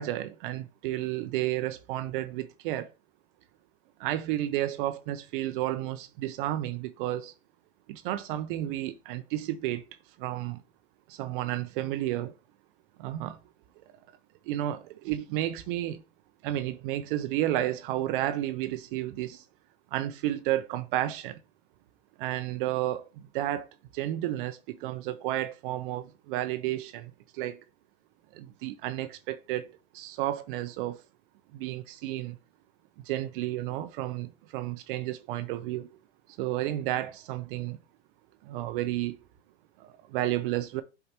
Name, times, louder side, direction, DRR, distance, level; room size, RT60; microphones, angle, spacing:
voice 1, 0.0-2.9 4.0-7.3 7.9-9.9 10.2-10.6 11.1-12.3 13.0-13.4 14.5-16.0 16.4-19.4 19.9-21.4 22.2-27.6 28.3-31.0 31.5-32.4 33.0-35.9 36.4-37.8 38.4-39.2 39.8-40.8, right 14 dB, 55° right, 0.7 m, -32 dB
7.8 x 4.8 x 2.9 m
hypercardioid pair, 125°, 33 cm